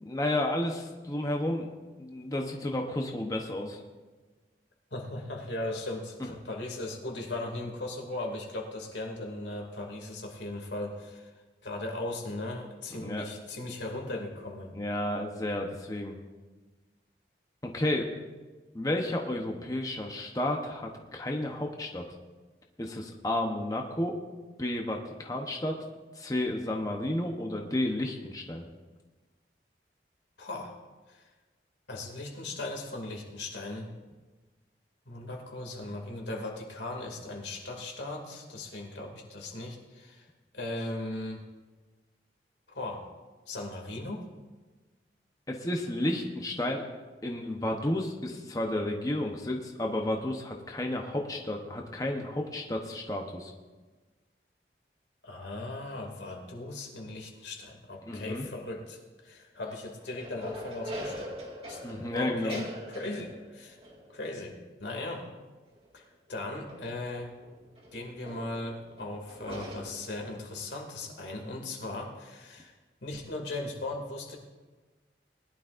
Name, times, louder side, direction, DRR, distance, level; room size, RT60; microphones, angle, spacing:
voice 1, 0.0-1.7 2.0-3.8 13.0-13.3 14.7-16.2 17.6-18.1 18.7-22.0 22.8-24.2 24.6-25.8 26.2-28.6 45.5-46.8 47.2-53.5 58.1-58.5 61.8-62.5, left 1 dB, 20° left, 2 dB, 0.9 m, -32 dB
voice 2, 4.9-11.3 11.6-14.7 30.4-30.8 31.1-31.3 31.9-33.9 35.1-40.3 40.5-41.4 42.7-43.1 43.5-44.2 55.2-61.2 61.6-61.8 62.1-63.8 64.1-65.3 65.9-66.0 66.3-67.3 67.9-72.7 73.0-74.4, left 2 dB, 90° left, 1 dB, 2.5 m, -38 dB
sound 1, 59.7-66.3 66.5-70.5, equal, 35° right, 2.0 m, -44 dB
20.5 x 11.5 x 2.6 m, 1.3 s
head